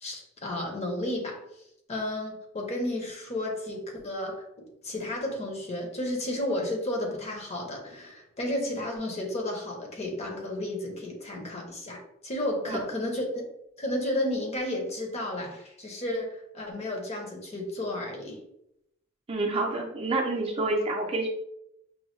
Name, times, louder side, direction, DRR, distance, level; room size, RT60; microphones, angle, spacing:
voice 1, 0.0-1.4 1.9-13.4 13.8-18.4, left 1 dB, 30° left, 1 dB, 0.8 m, -32 dB
voice 2, 19.3-21.3, right 2 dB, 30° right, 1 dB, 0.5 m, -28 dB
5.3 x 2.3 x 3.1 m, 0.80 s
head